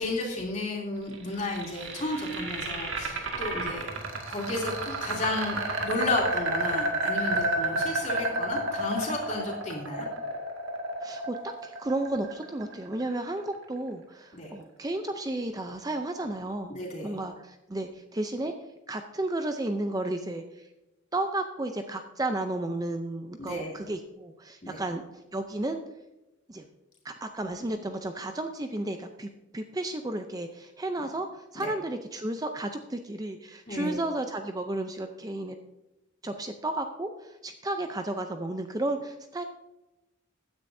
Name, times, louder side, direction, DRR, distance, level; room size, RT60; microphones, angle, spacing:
voice 1, 0.0-3.9 4.3-10.1 14.3-14.5 16.7-17.2 23.4-23.8 24.6-24.8 31.5-31.7 33.7-34.0, left 2 dB, 35° left, -2 dB, 3.0 m, -33 dB
sound 1, 1.1-13.2, right 2 dB, 85° right, 2.0 m, -31 dB
voice 2, 11.0-11.4 11.6-16.7 17.0-18.5 18.9-20.7 21.1-25.0 25.3-25.8 26.5-26.6 27.0-35.6 36.2-39.4, right 2 dB, 20° right, 6 dB, 0.5 m, -33 dB
15.5 x 9.9 x 2.7 m, 0.98 s
head